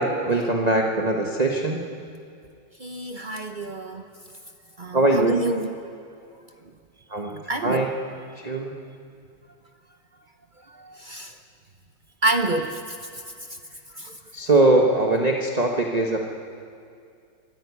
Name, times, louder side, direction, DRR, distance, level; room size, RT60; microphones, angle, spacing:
voice 1, 0.0-1.8 4.9-5.4 7.1-7.9 8.4-8.7 14.3-16.3, right 2 dB, 25° right, 1 dB, 1.2 m, -21 dB
voice 2, 2.8-4.0 4.8-5.6 7.5-7.8 10.8-11.3 12.2-12.8 14.0-14.1, right 2 dB, 45° right, 6 dB, 0.6 m, -27 dB
23.5 x 13.5 x 9.6 m, 2.3 s
omnidirectional pair, 2.0 m